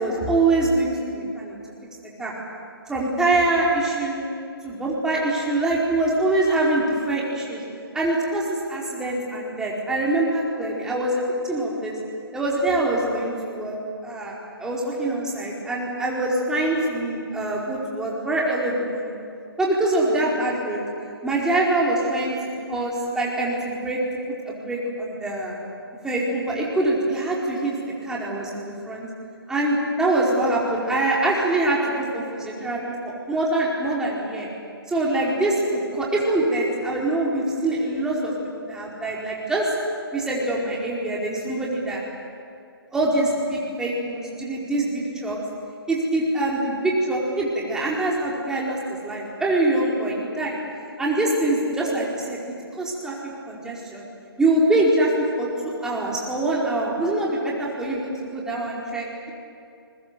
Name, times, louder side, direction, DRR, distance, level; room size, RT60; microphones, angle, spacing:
voice 1, 0.0-1.5 2.2-2.3 2.9-4.2 4.6-7.6 7.9-12.0 12.3-13.8 14.0-19.2 19.6-20.8 21.2-22.3 22.7-24.0 24.5-25.5 26.0-29.1 29.5-34.5 34.9-38.3 38.6-39.6 40.1-42.0 42.9-45.4 45.9-50.6 51.0-52.4 52.8-53.1 53.5-54.0 54.4-55.5 55.8-59.3, right 2 dB, 5° right, -5 dB, 4.5 m, -24 dB
29.5 x 22.5 x 7.0 m, 2.5 s
figure-of-eight pair, 145°, 13 cm